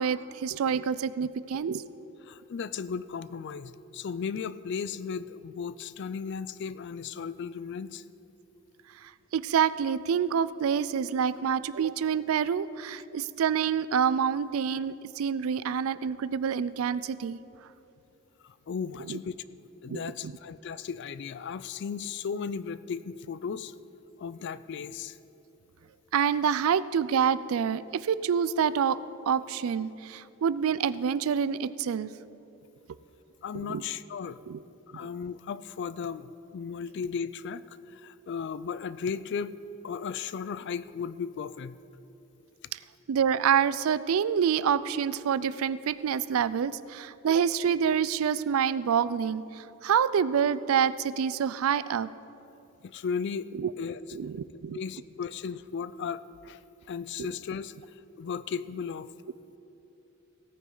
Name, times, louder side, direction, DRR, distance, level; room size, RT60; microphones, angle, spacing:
voice 1, 0.0-1.9 9.3-17.4 19.1-19.2 19.9-20.3 26.1-29.0 29.3-32.1 33.7-33.8 34.5-34.6 34.9-35.1 42.7-42.8 43.1-52.1 53.5-53.7 54.1-54.8 57.2-57.3, right 7 dB, 80° right, 16 dB, 0.4 m, -27 dB
voice 2, 2.2-8.0 18.4-19.3 19.8-23.7 24.2-25.2 33.4-34.4 34.9-39.5 39.8-41.8 52.8-53.5 53.8-54.0 54.7-56.6 56.9-57.7 58.2-59.1, left 6 dB, 55° left, 16 dB, 0.4 m, -35 dB
17.0 x 9.4 x 3.9 m, 2.9 s
head